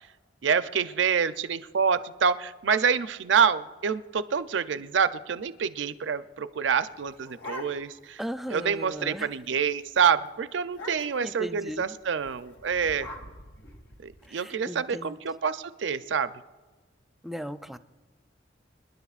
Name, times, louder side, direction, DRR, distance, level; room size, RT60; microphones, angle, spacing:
voice 1, 0.4-8.2 8.5-13.1 14.0-16.3, right 6 dB, 85° right, 12 dB, 0.5 m, -27 dB
sound 1, 6.8-8.1 8.5-8.6 8.8-9.2 9.5-9.7 10.0-10.1 10.7-11.3 12.2-14.3, left 1 dB, 80° left, 2.0 m, -44 dB
voice 2, 8.2-9.3 11.2-11.9 14.3-15.2 17.2-17.8, equal, ahead, 11 dB, 0.4 m, -37 dB
27.5 x 11.0 x 2.4 m, 1.3 s
head